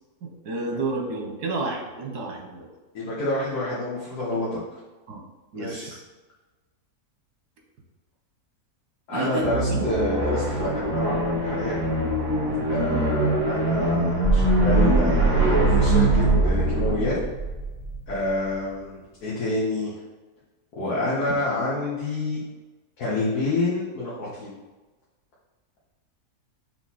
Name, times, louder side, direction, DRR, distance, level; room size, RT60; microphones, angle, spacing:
voice 1, 0.2-2.7 5.1-5.2 5.5-6.0 9.1-9.5 9.7-9.9, right 3 dB, 85° right, 1 dB, 1.7 m, -30 dB
voice 2, 2.9-4.6 5.5-5.9 9.1-11.8 12.7-17.2 18.1-19.9 20.7-22.4 23.0-24.5, left 2 dB, 75° left, -7 dB, 1.7 m, -28 dB
sound 1, 9.4-17.0, right 1 dB, 55° right, 2.3 m, -24 dB
sound 2, 14.2-18.2, right 3 dB, 50° left, 0.3 m, -23 dB
5.9 x 4.0 x 4.2 m, 1.2 s
omnidirectional pair, 1.7 m